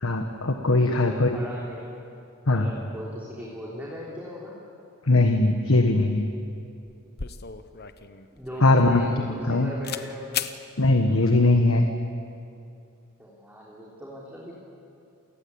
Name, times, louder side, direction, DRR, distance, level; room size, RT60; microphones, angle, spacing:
voice 1, 0.0-1.4 2.5-2.7 5.1-6.3 8.6-9.7 10.8-11.9, left 2 dB, 65° left, 4 dB, 1.5 m, -20 dB
voice 2, 0.7-1.9 2.5-4.6 8.3-10.5 13.2-14.5, left 1 dB, 5° right, -5 dB, 3.4 m, -39 dB
sound 1, 6.5-6.6 6.9-9.5 9.8-10.1 10.3-10.6, left 8 dB, 50° left, 1.0 m, -35 dB
28.5 x 18.0 x 8.7 m, 2.6 s
head